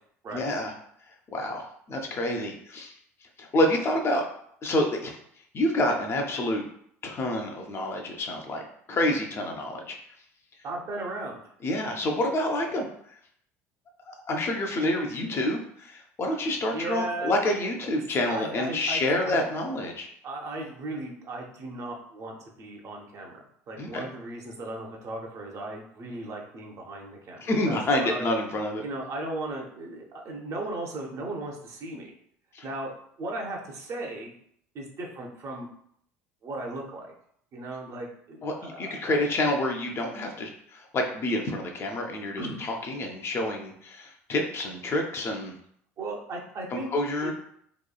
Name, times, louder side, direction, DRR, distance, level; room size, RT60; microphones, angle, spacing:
voice 1, 0.3-0.7 1.3-2.9 3.4-4.2 4.6-5.2 5.5-6.6 7.0-8.6 8.9-10.0 11.6-12.9 14.1-20.1 23.8-24.0 27.4-28.8 32.5-32.6 38.4-45.5 46.7-47.3, left 1 dB, 35° left, 2 dB, 0.5 m, -28 dB
voice 2, 10.6-11.4 16.7-17.4 17.8-19.4 20.2-28.3 28.8-32.1 32.6-32.9 33.2-34.3 34.7-35.7 36.4-37.1 37.5-39.1 42.4-42.6 46.0-46.9 47.2-47.3, right 2 dB, 40° right, 0 dB, 0.7 m, -36 dB
2.9 x 2.2 x 2.3 m, 0.67 s
figure-of-eight pair, 65°, 8 cm